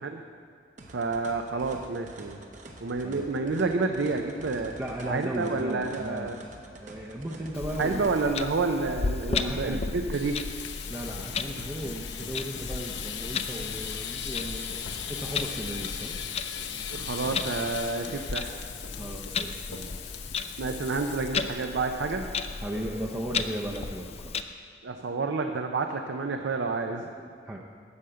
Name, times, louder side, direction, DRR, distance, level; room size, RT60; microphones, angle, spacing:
sound 1, 0.8-8.3, right 1 dB, 40° right, 0.9 m, -47 dB
voice 1, 0.9-2.4 2.8-4.7 5.0-6.3 7.8-10.4 16.9-18.7 20.6-22.3 24.8-27.1, right 3 dB, 75° right, 5 dB, 0.5 m, -29 dB
voice 2, 4.8-6.3 6.8-8.1 9.3-9.9 10.9-16.2 19.0-20.1 22.6-24.4 27.2-27.6, right 1 dB, 15° right, -2 dB, 0.5 m, -36 dB
Clock, 7.5-24.4, left 5 dB, 30° left, 0.3 m, -35 dB
sound 2, 10.1-21.7 22.0-22.3 22.6-22.7 23.0-23.4, left 7 dB, 70° left, 0.7 m, -38 dB
12.5 x 5.0 x 7.7 m, 2.2 s
head